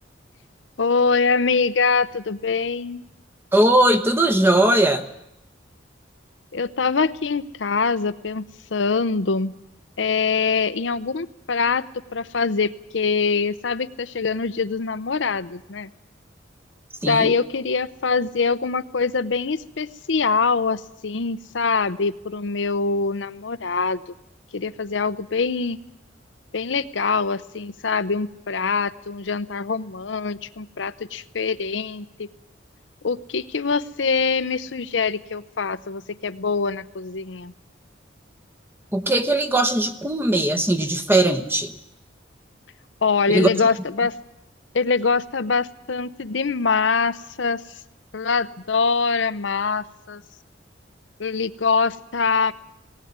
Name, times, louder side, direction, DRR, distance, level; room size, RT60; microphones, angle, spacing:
voice 1, 0.8-3.0 6.5-8.5 8.7-9.5 10.0-11.8 12.1-15.9 17.1-24.0 24.5-25.8 26.5-32.3 33.0-37.5 43.0-44.2 44.7-47.6 48.1-50.2 51.2-52.5, left 4 dB, 80° left, 13 dB, 0.7 m, -24 dB
voice 2, 3.5-5.1 17.0-17.3 38.9-41.7 43.3-43.5, right 1 dB, 10° right, 10 dB, 1.1 m, -19 dB
18.5 x 18.0 x 9.5 m, 0.83 s
head